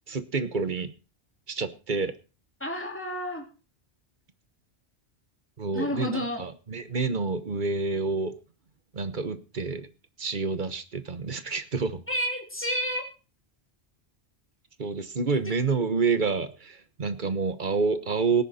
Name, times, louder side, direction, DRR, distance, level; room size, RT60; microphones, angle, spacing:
voice 1, 0.1-0.9 1.5-2.1 5.6-8.3 8.9-9.9 10.2-12.0 14.8-18.4, right 4 dB, 45° right, 12 dB, 1.3 m, -28 dB
voice 2, 2.6-3.5 5.7-6.4 12.1-13.0, equal, 10° left, 2 dB, 2.9 m, -30 dB
18.0 x 10.5 x 4.2 m, 0.34 s
omnidirectional pair, 1.1 m